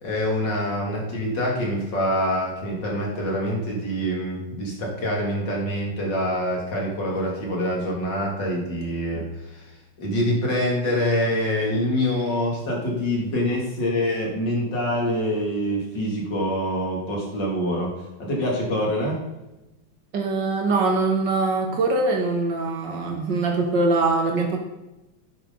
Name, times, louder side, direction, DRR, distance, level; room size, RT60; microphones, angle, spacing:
voice 1, 0.0-19.2, equal, 60° left, -2 dB, 3.4 m, -25 dB
voice 2, 20.1-24.6, right 3 dB, 65° right, 1 dB, 2.0 m, -22 dB
11.0 x 10.0 x 4.0 m, 0.98 s
omnidirectional pair, 2.2 m